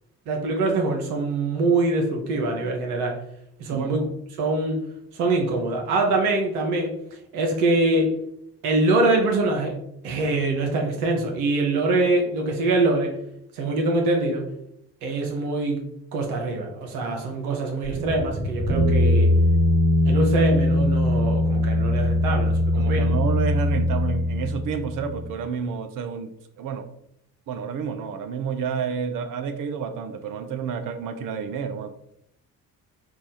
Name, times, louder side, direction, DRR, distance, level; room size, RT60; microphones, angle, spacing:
voice 1, 0.3-3.2 3.6-4.0 4.4-4.8 5.1-6.9 7.3-8.1 8.6-9.8 10.0-13.2 13.5-14.5 15.0-15.8 16.1-19.3 20.0-23.0, right 2 dB, 85° right, 2 dB, 0.8 m, -24 dB
voice 2, 3.7-4.1 22.3-22.4 22.7-26.3 26.6-26.9 27.5-31.9, right 6 dB, 45° right, 7 dB, 0.6 m, -30 dB
sound 1, 17.8-25.3, left 1 dB, 5° right, 1.0 m, -21 dB
4.6 x 2.4 x 4.0 m, 0.75 s
hypercardioid pair, 40°, 44 cm